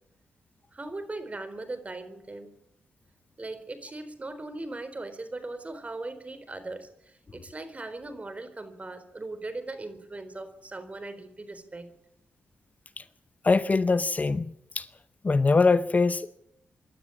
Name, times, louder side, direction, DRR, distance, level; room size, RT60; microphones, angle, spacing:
voice 1, 0.7-2.5 3.4-11.9, right 2 dB, 35° right, 4.1 m, -39 dB
voice 2, 13.4-14.9 15.2-16.4, left 3 dB, 35° left, 0.9 m, -23 dB
26.0 x 12.0 x 8.6 m
cardioid pair, 55°, 4 cm